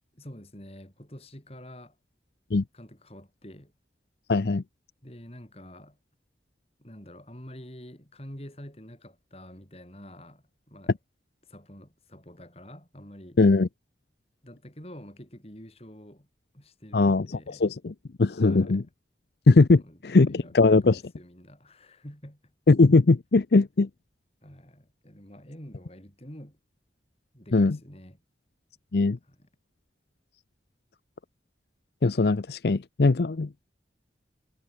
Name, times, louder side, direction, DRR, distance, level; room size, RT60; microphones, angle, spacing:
voice 1, 0.1-2.0 2.7-3.7 5.0-6.0 6.8-11.0 11.4-13.4 14.4-16.3 16.5-17.7 18.4-18.9 19.8-22.5 24.4-26.6 27.3-28.2 29.2-29.5, equal, 35° left, 5.5 m, -47 dB
voice 2, 4.3-4.6 13.4-13.7 16.9-17.9 18.2-18.8 19.5-21.0 22.7-23.9 27.5-27.8 28.9-29.2 32.0-33.5, left 3 dB, 65° left, 0.6 m, -20 dB
head